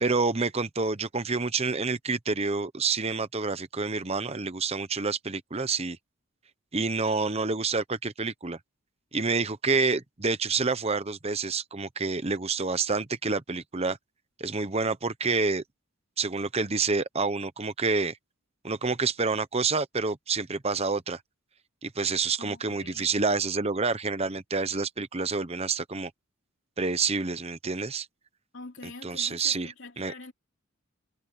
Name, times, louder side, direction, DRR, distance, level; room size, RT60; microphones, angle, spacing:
voice 1, 0.0-6.0 6.7-8.6 9.1-14.0 14.4-15.6 16.2-18.2 18.6-21.2 21.8-26.1 26.8-28.1 29.0-30.1, right 4 dB, 30° right, 0.9 m, -28 dB
voice 2, 22.4-23.3 28.5-30.3, left 3 dB, 60° left, 3.1 m, -45 dB
head